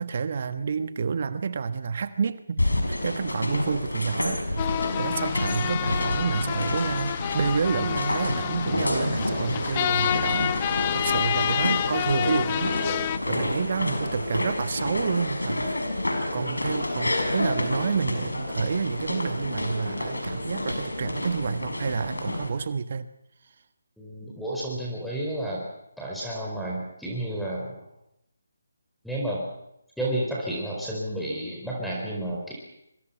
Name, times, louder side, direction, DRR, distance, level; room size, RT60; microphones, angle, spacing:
voice 1, 0.0-12.8 13.3-15.7 16.3-23.1, right 5 dB, 45° right, 12 dB, 1.2 m, -29 dB
sound 1, 2.6-22.5, left 1 dB, 80° left, 5.8 m, -29 dB
sound 2, 4.6-13.2, left 11 dB, 25° left, 0.9 m, -29 dB
voice 2, 24.0-25.6 26.0-27.8 29.0-29.4 30.0-32.5, right 1 dB, ahead, -5 dB, 4.6 m, -31 dB
26.5 x 23.5 x 5.7 m, 0.79 s
figure-of-eight pair, 150°, 0 cm